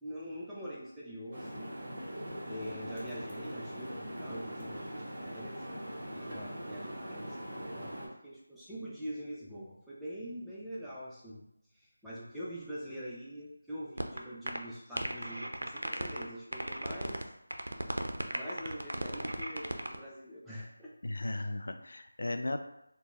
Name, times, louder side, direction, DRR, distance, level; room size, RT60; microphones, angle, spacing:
voice 1, 0.0-1.8 2.2-5.7 6.1-11.5 11.7-17.2 17.6-17.9 18.3-20.9 21.3-21.4, equal, ahead, -9 dB, 0.5 m, -44 dB
sound 1, 1.3-8.1, equal, 35° right, 1.0 m, -42 dB
sound 2, 14.0-14.2 14.5-14.6 15.0-16.2 16.5-17.2 17.5-20.0, right 1 dB, 80° right, 0.5 m, -35 dB
voice 2, 21.0-22.6, left 2 dB, 65° left, 6 dB, 0.3 m, -36 dB
4.0 x 2.1 x 3.0 m, 0.80 s
figure-of-eight pair, 165°, 0 cm